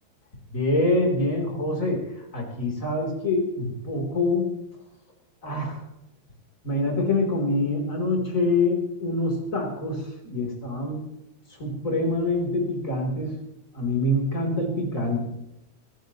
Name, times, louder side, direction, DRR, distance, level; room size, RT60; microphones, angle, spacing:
voice 1, 0.5-2.0 2.3-4.5 5.4-5.9 6.6-11.0 11.6-13.4 13.7-15.2, left 2 dB, 20° left, 0 dB, 3.2 m, -25 dB
24.0 x 14.0 x 3.1 m, 0.87 s
omnidirectional pair, 5.6 m